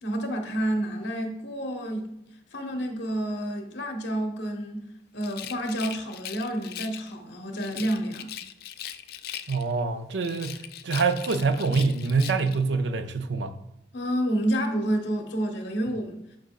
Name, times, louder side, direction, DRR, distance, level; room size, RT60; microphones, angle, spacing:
voice 1, 0.0-2.1 2.5-4.8 5.1-8.3 13.9-16.2, right 1 dB, 85° left, 1.2 m, -29 dB
Rattle, 5.2-7.1 7.6-9.8 10.2-12.6, left 11 dB, 55° left, 0.3 m, -40 dB
voice 2, 9.5-13.5, right 4 dB, 80° right, 0.6 m, -25 dB
10.5 x 5.0 x 2.5 m
head